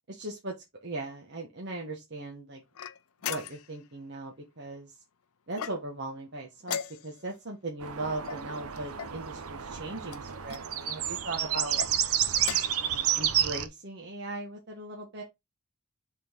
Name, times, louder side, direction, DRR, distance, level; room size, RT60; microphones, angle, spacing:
voice 1, 0.1-0.5 0.8-2.6 3.2-5.0 5.5-11.8 12.8-15.2, right 2 dB, 50° right, 1.2 m, -38 dB
sound 1, 2.8-3.8 5.5-6.1 6.6-7.4 8.2-9.2 10.1-10.6 11.6-11.9 12.4-12.9, left 8 dB, 80° left, 0.6 m, -38 dB
sound 2, 7.8-13.7, right 10 dB, 80° right, 0.8 m, -30 dB
5.8 x 3.9 x 4.5 m
head